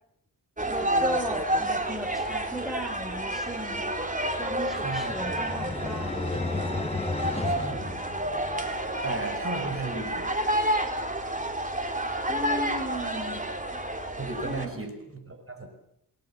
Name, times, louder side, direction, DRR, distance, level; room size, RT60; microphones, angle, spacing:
voice 1, 0.6-3.9 4.4-6.3 12.3-13.4 14.4-14.8, equal, ahead, 6 dB, 3.2 m, -36 dB
sound 1, 0.6-14.7, right 1 dB, 20° right, 3.6 m, -30 dB
sound 2, 4.3-8.8, left 3 dB, 15° left, 1.1 m, -34 dB
voice 2, 4.8-5.1 7.4-8.1 9.0-10.4 14.2-15.7, right 3 dB, 35° right, 6 dB, 5.6 m, -35 dB
29.0 x 19.5 x 7.1 m, 0.73 s
wide cardioid pair, 90°, 37 cm